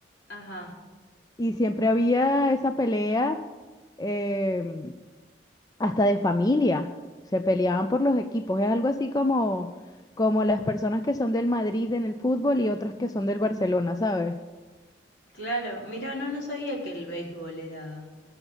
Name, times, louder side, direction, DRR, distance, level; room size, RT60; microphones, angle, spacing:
voice 1, 0.3-0.7 15.3-18.1, equal, 70° left, -3 dB, 3.7 m, -34 dB
voice 2, 1.4-3.4 4.0-4.9 5.8-6.9 7.3-9.7 10.2-14.4, left 1 dB, 20° left, 7 dB, 0.4 m, -25 dB
19.5 x 7.1 x 5.5 m, 1.3 s
head